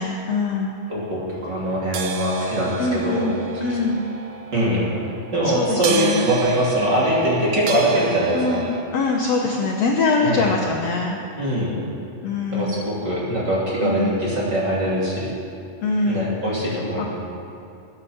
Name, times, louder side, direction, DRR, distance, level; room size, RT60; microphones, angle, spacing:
voice 1, 0.0-0.8 2.8-4.1 5.4-6.3 8.3-11.2 12.2-12.9 13.8-14.3 15.8-16.4 16.6-17.1, left 3 dB, 85° left, 0 dB, 1.4 m, -23 dB
voice 2, 0.9-3.3 4.5-4.8 5.3-8.6 10.2-10.5 11.4-11.8 12.5-15.3 16.1-17.1, right 1 dB, 30° right, -6 dB, 2.9 m, -22 dB
sound 1, 1.9-8.8, right 6 dB, 75° right, 1.8 m, -32 dB
13.0 x 9.8 x 7.1 m, 2.6 s
omnidirectional pair, 4.3 m